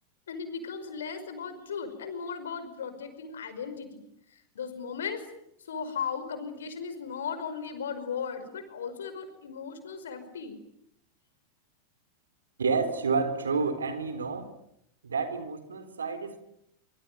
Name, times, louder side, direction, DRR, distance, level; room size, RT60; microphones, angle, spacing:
voice 1, 0.3-4.1 4.6-5.2 5.7-10.6, left 6 dB, 65° left, 10 dB, 5.2 m, -36 dB
voice 2, 12.6-14.5 15.0-16.4, right 4 dB, 70° right, 9 dB, 3.7 m, -29 dB
25.5 x 25.0 x 9.1 m, 0.78 s
figure-of-eight pair, 90°, 0 cm